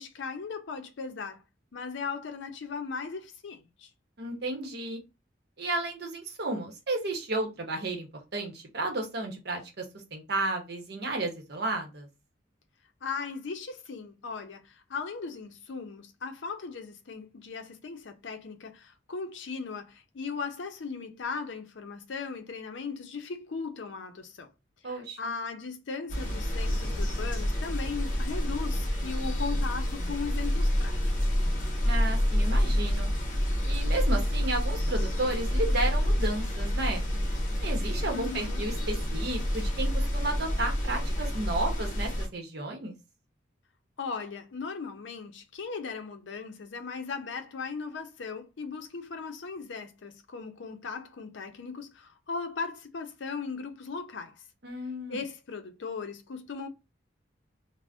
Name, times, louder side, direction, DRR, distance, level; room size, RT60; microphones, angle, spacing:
voice 1, 0.0-1.4 1.7-3.9 13.0-24.5 24.8-31.0 38.0-38.7 44.0-54.4 55.1-56.7, left 5 dB, 70° left, 0.5 m, -38 dB
voice 2, 4.2-5.0 5.6-8.1 8.3-9.8 10.1-12.1 24.8-25.3 31.8-33.1 33.7-37.1 37.6-42.9 54.6-55.2, right 2 dB, 55° right, 0.8 m, -33 dB
sound 1, 26.1-42.3, equal, 45° left, 0.8 m, -28 dB
2.5 x 2.0 x 3.4 m
head